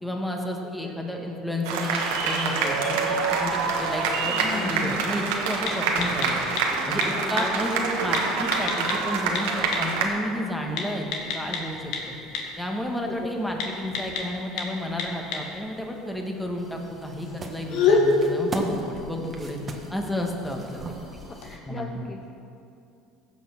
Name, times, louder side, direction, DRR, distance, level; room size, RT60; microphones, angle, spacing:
voice 1, 0.0-6.4 6.9-11.1 11.3-11.9 12.6-19.6 19.9-20.8 21.7-22.1, left 1 dB, 5° left, 1 dB, 1.6 m, -31 dB
sound 1, 1.6-10.1, right 4 dB, 85° right, 1.5 m, -26 dB
sound 2, 3.3-21.5, left 3 dB, 70° left, 1.8 m, -32 dB
voice 2, 4.2-5.0 7.1-7.5 13.0-13.3 21.3-22.3, left 3 dB, 25° left, 2 dB, 0.8 m, -36 dB
sound 3, 16.6-21.6, right 3 dB, 25° right, 1.4 m, -39 dB
15.5 x 5.8 x 5.9 m, 2.7 s
supercardioid pair, 105°, 0 cm